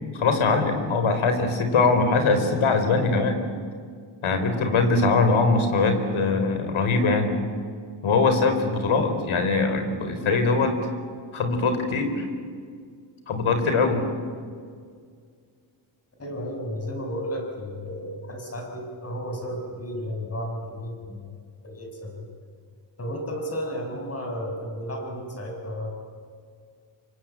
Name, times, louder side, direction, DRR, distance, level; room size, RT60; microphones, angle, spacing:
voice 1, 0.1-3.4 4.2-7.4 8.0-10.7 11.3-12.3 13.3-14.1, left 3 dB, 80° left, 8 dB, 4.4 m, -22 dB
voice 2, 16.2-21.3 21.6-22.2 23.0-25.9, equal, 30° left, 2 dB, 6.1 m, -33 dB
27.5 x 24.0 x 8.9 m, 2.1 s
wide cardioid pair, 140°, 48 cm